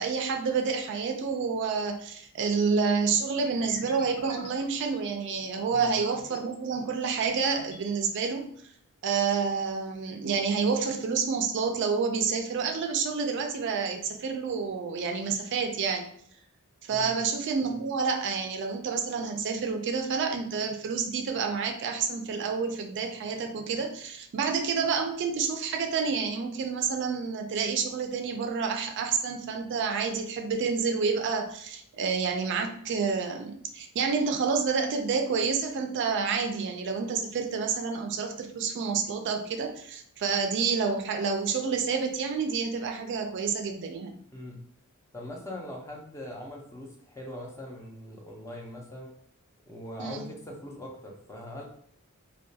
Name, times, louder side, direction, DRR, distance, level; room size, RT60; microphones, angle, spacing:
voice 1, 0.0-8.5 9.0-16.1 16.8-44.2 50.0-50.2, right 5 dB, 55° right, 4 dB, 0.3 m, -29 dB
sound 1, 3.3-6.4 6.9-7.9, left 2 dB, 90° left, 0.6 m, -48 dB
voice 2, 44.3-44.6 45.1-49.1 49.6-51.6, left 1 dB, 15° left, -1 dB, 0.4 m, -41 dB
2.3 x 2.2 x 2.6 m, 0.65 s
head